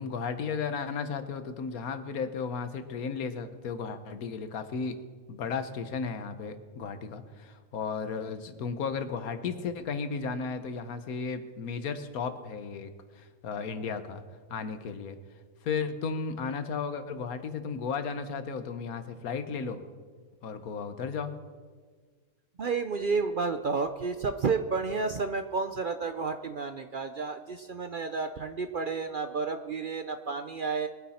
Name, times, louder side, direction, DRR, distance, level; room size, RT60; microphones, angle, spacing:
voice 1, 0.0-5.0 5.3-12.9 13.2-14.2 14.5-15.2 15.6-19.8 20.4-21.3, left 5 dB, 85° left, 10 dB, 1.5 m, -34 dB
voice 2, 22.6-30.9, right 4 dB, 55° right, 8 dB, 0.6 m, -31 dB
22.0 x 9.6 x 4.3 m, 1.5 s
omnidirectional pair, 1.5 m